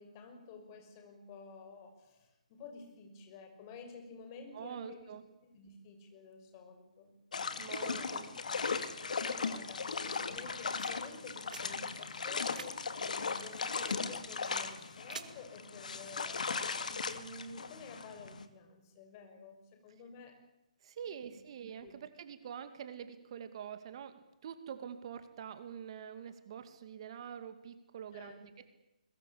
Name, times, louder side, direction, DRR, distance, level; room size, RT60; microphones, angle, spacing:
voice 1, 0.0-7.1 8.0-8.6 9.2-16.5 16.8-20.3 21.1-21.4 21.8-21.9 28.1-28.4, left 4 dB, 30° left, 4 dB, 6.3 m, -51 dB
voice 2, 4.5-5.2 7.6-8.3 20.8-28.6, right 8 dB, 40° right, 9 dB, 2.4 m, -46 dB
sound 1, 7.3-18.4, left 5 dB, 70° left, 2.6 m, -38 dB
sound 2, 10.3-15.3, right 5 dB, 75° right, 2.8 m, -53 dB
22.0 x 21.5 x 8.7 m, 0.92 s
hypercardioid pair, 155°, 4 cm